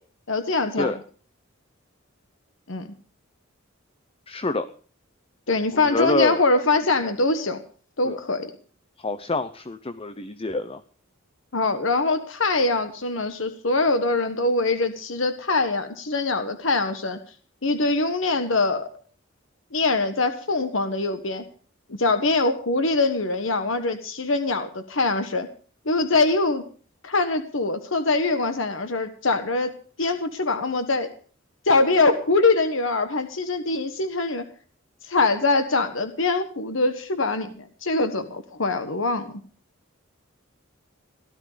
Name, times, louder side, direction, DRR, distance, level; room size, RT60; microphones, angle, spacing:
voice 1, 0.3-0.9 2.7-2.9 5.5-7.6 8.0-8.5 11.5-17.2 17.6-18.9 19.7-21.4 22.0-25.5 25.8-26.6 27.0-31.1 31.6-34.5 35.0-39.3, left 3 dB, 70° left, 9 dB, 1.3 m, -23 dB
voice 2, 4.3-4.7 5.7-6.4 8.0-8.2 9.0-10.8, left 2 dB, 30° left, 12 dB, 0.8 m, -26 dB
17.0 x 12.5 x 5.0 m, 0.42 s
head